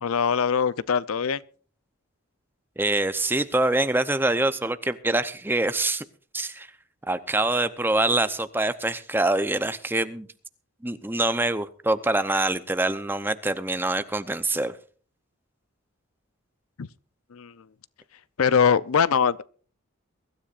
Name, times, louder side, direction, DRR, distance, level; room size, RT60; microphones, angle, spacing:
voice 1, 0.0-1.4 16.8-16.9 17.3-17.5 18.4-19.4, left 6 dB, 85° left, 0.6 m, -22 dB
voice 2, 2.8-6.0 6.3-6.7 7.1-10.3 10.8-14.8, right 2 dB, 10° right, 0.7 m, -25 dB
23.0 x 13.0 x 2.5 m
head